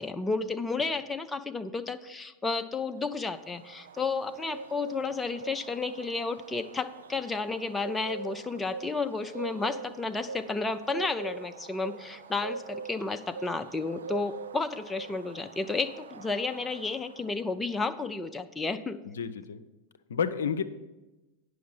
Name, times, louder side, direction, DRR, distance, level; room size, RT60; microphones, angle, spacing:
voice 1, 0.0-19.0, left 3 dB, 10° left, 8 dB, 0.4 m, -32 dB
Bird, 2.9-17.6, right 4 dB, 65° right, 0.4 m, -43 dB
voice 2, 19.1-19.6 20.1-20.6, left 7 dB, 65° left, 11 dB, 0.5 m, -30 dB
9.3 x 6.2 x 5.4 m, 1.1 s
figure-of-eight pair, 90°, 0 cm